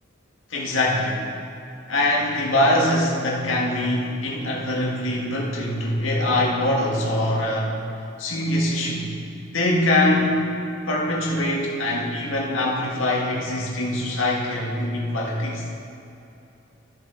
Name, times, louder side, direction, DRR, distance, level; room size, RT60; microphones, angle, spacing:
voice 1, 0.5-1.3 1.9-7.8 8.2-9.1 9.5-10.5 10.9-15.6, left 1 dB, 85° left, -3 dB, 1.8 m, -23 dB
13.5 x 7.1 x 4.0 m, 2.7 s
head